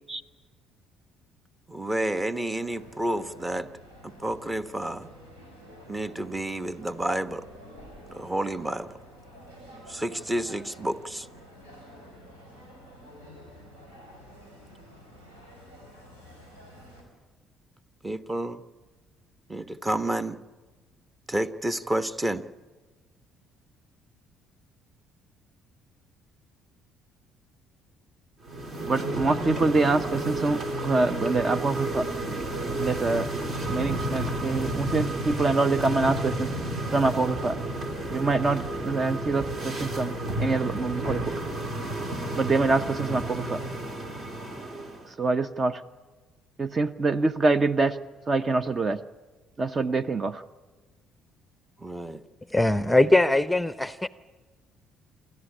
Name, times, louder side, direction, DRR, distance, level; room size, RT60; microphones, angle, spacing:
voice 1, 1.7-3.7 4.0-5.1 5.9-7.5 8.1-8.9 9.9-11.3 18.0-18.6 19.5-20.4 21.3-22.4 51.8-52.2, right 1 dB, 20° right, 12 dB, 1.2 m, -30 dB
sound 1, 2.6-17.0, equal, 85° right, 5.8 m, -49 dB
sound 2, 28.4-45.1, right 1 dB, 50° right, 3.0 m, -31 dB
voice 2, 28.8-32.0 32.8-33.3 33.7-36.5 36.9-37.6 38.1-40.1 40.4-41.3 42.3-43.6 45.2-45.8 46.6-48.0 48.3-49.0 49.6-50.4, right 3 dB, 35° right, 13 dB, 0.7 m, -25 dB
voice 3, 52.5-54.1, left 2 dB, 5° left, 15 dB, 0.7 m, -21 dB
28.0 x 13.5 x 9.9 m, 1.3 s
hypercardioid pair, 50°, 0 cm